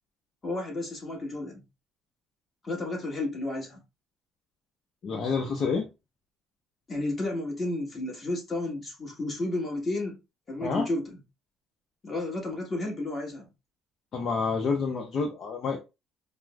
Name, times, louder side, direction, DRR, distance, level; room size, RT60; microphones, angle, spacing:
voice 1, 0.4-1.6 2.6-3.8 6.9-10.2 10.5-11.2 12.0-13.5, left 2 dB, 25° left, 1.3 m, -32 dB
voice 2, 5.0-5.9 10.6-10.9 14.1-15.8, left 4 dB, 40° left, 0.6 m, -28 dB
4.8 x 2.0 x 2.3 m
cardioid pair, 140°, 0 cm